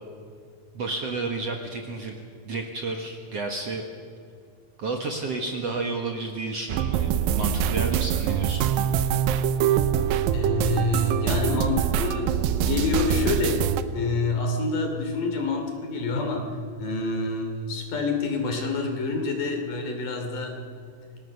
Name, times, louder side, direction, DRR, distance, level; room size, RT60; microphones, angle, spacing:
voice 1, 0.7-2.2 2.4-3.8 4.8-8.6, right 3 dB, 55° right, 3 dB, 2.0 m, -31 dB
sound 1, 6.7-13.8, right 9 dB, 75° right, 2.5 m, -24 dB
voice 2, 10.3-13.6 13.9-16.4 16.8-20.6, left 3 dB, 60° left, 3 dB, 4.4 m, -27 dB
27.5 x 18.5 x 6.7 m, 2.2 s
omnidirectional pair, 4.4 m